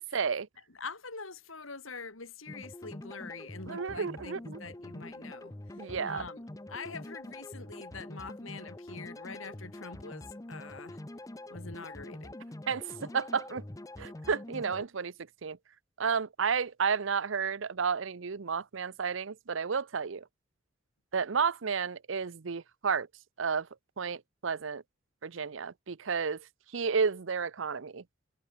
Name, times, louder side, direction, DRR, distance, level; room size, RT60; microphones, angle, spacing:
voice 1, 0.1-0.5 3.7-4.6 5.8-6.3 12.7-13.6 14.0-15.1 15.4-15.6 16.0-20.2 21.1-23.1 23.4-23.7 24.0-24.8 25.2-26.5 26.7-28.0, right 5 dB, 70° right, 0.7 m, -31 dB
voice 2, 0.8-5.5 6.0-6.4 6.7-11.0 11.5-12.4, left 4 dB, 85° left, 3.8 m, -45 dB
sound 1, 2.5-14.9, left 1 dB, 15° left, 0.6 m, -45 dB
head